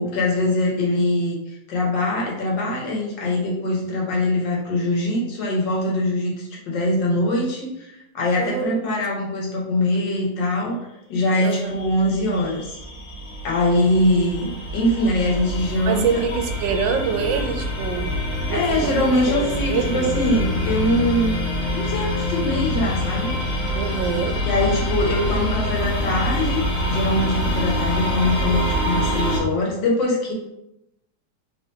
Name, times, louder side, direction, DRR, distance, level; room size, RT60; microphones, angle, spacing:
voice 1, 0.0-10.8 11.1-12.8 13.4-16.2 18.5-21.3 21.7-23.4 24.4-30.3, left 1 dB, 80° left, -2 dB, 1.7 m, -22 dB
voice 2, 8.3-8.8 11.4-11.7 15.9-18.1 18.5-18.9 19.3-20.1 23.7-24.4, right 6 dB, 80° right, 5 dB, 1.2 m, -25 dB
sound 1, 11.6-29.4, left 1 dB, 45° left, 1.9 m, -26 dB
3.5 x 3.5 x 2.7 m, 0.86 s
omnidirectional pair, 1.9 m